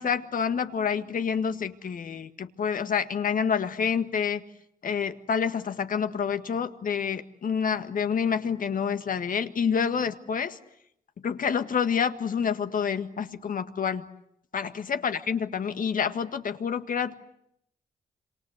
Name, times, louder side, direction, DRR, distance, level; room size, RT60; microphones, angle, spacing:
voice 1, 0.0-4.4 4.8-10.6 11.2-14.1 14.5-17.1, left 7 dB, 65° left, 9 dB, 1.8 m, -28 dB
27.5 x 26.5 x 8.1 m, 0.75 s
cardioid pair, 80°, 15 cm